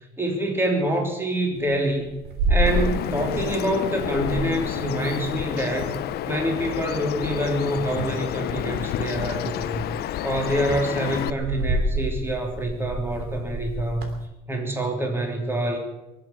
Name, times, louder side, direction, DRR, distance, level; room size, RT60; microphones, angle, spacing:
voice 1, 0.2-2.1 2.5-6.0 6.3-9.8 10.2-14.2 14.5-15.8, right 1 dB, 15° right, 2 dB, 3.4 m, -26 dB
sound 1, 1.6-3.6 3.9-6.2 6.6-8.1 9.2-9.6 10.0-14.2, right 1 dB, 75° right, 3.0 m, -29 dB
Bird vocalization bird call bird song, 2.7-11.3, left 12 dB, 70° left, 0.7 m, -30 dB
23.5 x 8.3 x 7.2 m, 0.98 s
cardioid pair, 110°, 17 cm